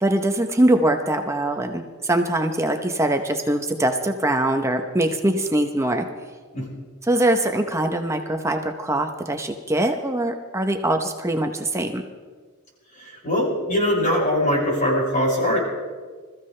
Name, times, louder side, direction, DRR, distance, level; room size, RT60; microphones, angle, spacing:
voice 1, 0.0-6.1 7.0-12.0, right 1 dB, 15° right, 5 dB, 0.8 m, -22 dB
voice 2, 13.0-15.6, left 1 dB, 35° left, -4 dB, 5.9 m, -22 dB
26.5 x 15.0 x 3.3 m, 1.5 s
head